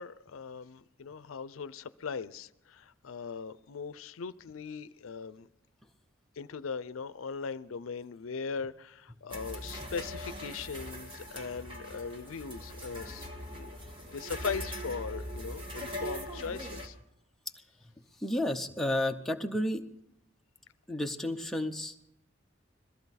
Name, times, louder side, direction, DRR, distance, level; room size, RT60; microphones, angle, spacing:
voice 1, 0.0-5.5 6.4-13.7 14.1-16.9, left 5 dB, 90° left, 0.5 m, -39 dB
sound 1, 9.3-16.9, equal, 25° right, 1.7 m, -41 dB
voice 2, 18.2-19.8 20.9-22.1, left 1 dB, ahead, 0.7 m, -31 dB
21.5 x 14.0 x 4.1 m
head